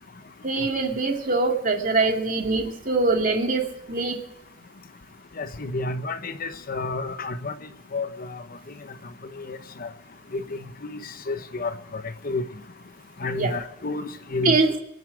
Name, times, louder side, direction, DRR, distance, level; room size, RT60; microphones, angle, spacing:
voice 1, 0.4-4.2 13.3-13.5 14.4-14.7, right 3 dB, 45° right, 2 dB, 2.5 m, -23 dB
voice 2, 5.4-7.5 7.9-8.4 9.4-9.9 10.3-11.0 11.3-12.4 13.2-14.6, left 3 dB, 50° left, 11 dB, 0.9 m, -30 dB
24.5 x 9.6 x 4.8 m, 0.85 s
head